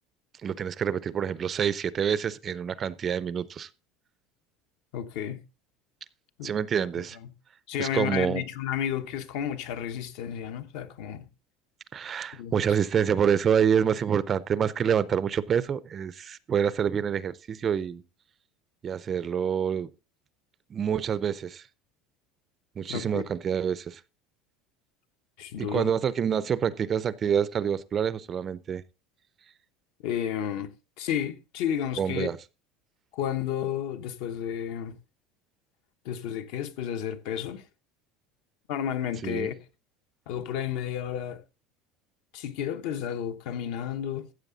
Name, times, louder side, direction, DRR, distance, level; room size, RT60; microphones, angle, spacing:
voice 1, 0.4-3.7 6.4-7.2 7.8-8.4 11.9-18.0 18.8-19.9 20.7-21.6 22.8-24.0 25.6-28.8 32.0-32.4 39.2-39.5, right 8 dB, 25° right, 0.5 m, -27 dB
voice 2, 4.9-5.4 6.4-6.5 7.2-7.3 7.7-11.3 12.3-12.5 22.9-23.2 25.4-25.9 30.0-30.7 31.0-32.3 33.1-34.9 36.0-37.6 38.7-39.6 40.3-41.4 42.3-44.3, left 9 dB, 65° left, 1.1 m, -32 dB
14.5 x 7.7 x 3.9 m
cardioid pair, 165°, 0 cm